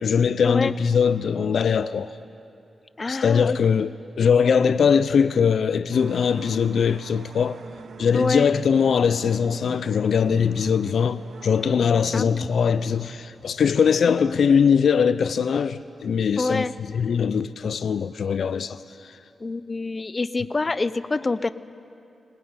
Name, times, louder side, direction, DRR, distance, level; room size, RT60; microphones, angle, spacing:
voice 1, 0.0-2.1 3.1-7.6 8.0-19.2, left 6 dB, 75° left, 0.5 m, -21 dB
voice 2, 3.0-3.6 8.1-8.5 12.1-12.3 14.1-14.3 16.4-16.7 19.4-21.5, left 3 dB, 30° left, 0.6 m, -26 dB
sound 1, 5.9-14.3 14.6-14.7 15.8-15.9, right 5 dB, 75° right, 1.2 m, -43 dB
20.5 x 19.5 x 9.6 m
wide cardioid pair, 100°, 0 cm